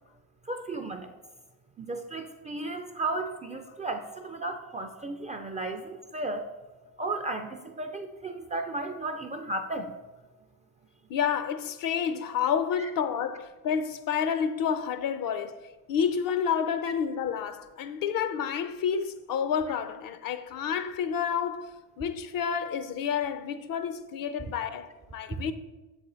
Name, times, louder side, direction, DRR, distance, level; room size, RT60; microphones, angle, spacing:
voice 1, 0.5-1.1 1.8-6.5 7.0-10.0, right 2 dB, 15° right, 0.4 m, -34 dB
voice 2, 11.1-15.6 15.9-21.7 22.0-25.5, left 7 dB, 45° left, 0.5 m, -29 dB
6.6 x 4.3 x 3.8 m
hypercardioid pair, 60°, 48 cm